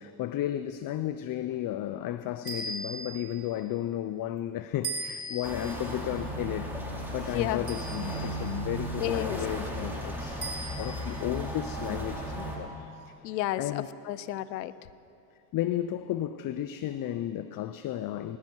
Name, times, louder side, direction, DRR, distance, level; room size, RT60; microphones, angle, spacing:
voice 1, 0.0-6.7 7.1-13.1 13.6-13.9 15.5-18.4, left 12 dB, 45° left, 0.6 m, -33 dB
sound 1, 2.4-3.3 4.8-5.7 7.7-8.4 10.4-11.1, right 2 dB, 25° right, 4.1 m, -37 dB
sound 2, 5.4-12.6, equal, 5° right, 3.9 m, -35 dB
voice 2, 7.3-7.7 9.0-9.4 13.2-14.7, left 13 dB, 90° left, 0.6 m, -32 dB
19.5 x 15.5 x 4.5 m
hypercardioid pair, 65°, 48 cm